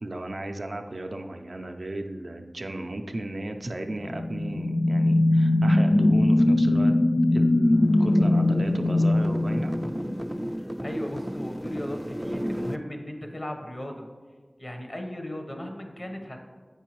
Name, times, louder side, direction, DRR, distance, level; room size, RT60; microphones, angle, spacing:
voice 1, 0.0-6.9 7.3-9.7, right 1 dB, 75° right, 4 dB, 0.5 m, -35 dB
sound 1, 3.9-10.4, left 1 dB, 60° left, 0.4 m, -21 dB
sound 2, 7.7-12.8, equal, 10° right, 0.3 m, -33 dB
voice 2, 10.6-14.1 14.6-16.4, left 1 dB, 40° left, 3 dB, 1.0 m, -36 dB
8.1 x 5.4 x 3.0 m, 1.5 s
wide cardioid pair, 45°, 0 cm